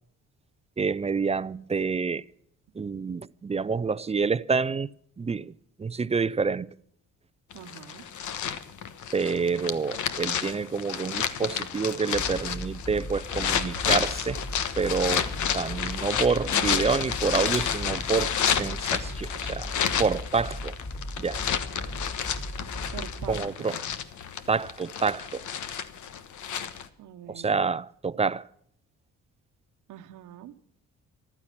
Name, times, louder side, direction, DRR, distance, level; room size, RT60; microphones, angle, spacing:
voice 1, 0.8-2.2 2.7-4.9 5.2-5.5 5.8-6.7 9.1-14.4 14.8-19.7 20.0-20.8 21.2-21.4 23.3-23.8 24.5-25.5 27.3-28.5, right 5 dB, 20° right, 0.5 m, -28 dB
sound 1, 7.5-26.9, left 8 dB, 75° left, 1.3 m, -30 dB
voice 2, 7.5-8.0 22.9-23.8 27.0-27.6 29.9-30.5, right 11 dB, 85° right, 1.2 m, -43 dB
sound 2, 12.1-23.4, left 1 dB, 30° left, 3.2 m, -37 dB
14.5 x 12.5 x 6.0 m
cardioid pair, 90°, 30 cm